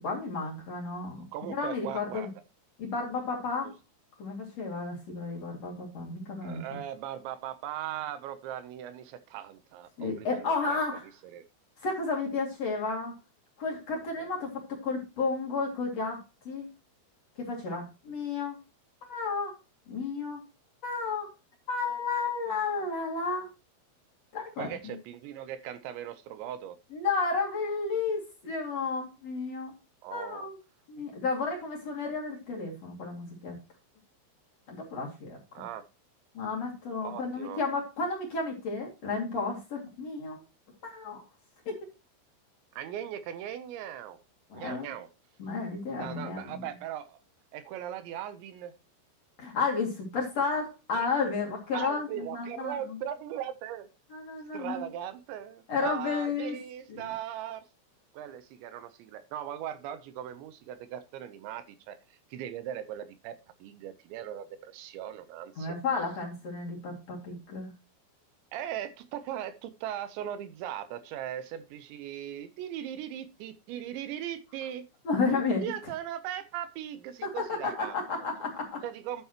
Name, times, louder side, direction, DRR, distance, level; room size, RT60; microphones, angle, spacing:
voice 1, 0.0-1.2 1.6-2.3 2.8-3.7 4.2-6.8 10.0-11.0 11.8-13.1 13.6-16.2 16.4-16.7 17.4-18.6 19.1-19.5 19.9-20.4 20.8-21.3 21.7-23.5 24.3-24.9 26.9-29.7 30.1-30.6 30.9-33.6 34.7-35.4 36.3-40.4 40.8-41.2 41.7-41.9 44.5-44.9 45.4-46.7 49.4-52.9 54.1-54.9 55.7-56.6 56.9-57.1 65.6-67.7 75.0-75.7 77.2-78.8, left 4 dB, 45° left, -1 dB, 2.8 m, -32 dB
voice 2, 1.2-2.3 3.6-3.7 6.4-10.8 11.3-11.4 14.2-14.3 24.6-26.8 30.0-30.4 35.5-35.9 37.0-37.6 42.7-44.2 44.5-45.1 46.0-47.2 47.5-48.7 51.0-51.1 51.7-53.9 54.5-57.6 58.1-65.8 68.5-74.9 75.6-78.0 78.8-79.3, right 10 dB, 80° right, 12 dB, 3.0 m, -39 dB
11.5 x 9.1 x 3.0 m, 0.28 s
omnidirectional pair, 5.4 m